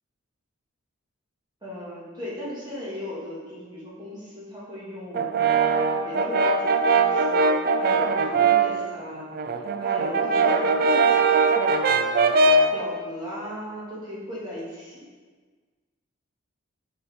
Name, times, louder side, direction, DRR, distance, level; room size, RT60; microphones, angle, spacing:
voice 1, 1.6-5.6 6.0-9.4 9.8-11.5 12.7-15.0, left 1 dB, 20° right, -8 dB, 1.6 m, -37 dB
Brass instrument, 5.1-8.8 9.2-12.8, right 4 dB, 45° right, 0.3 m, -21 dB
6.8 x 5.0 x 3.3 m, 1.5 s
head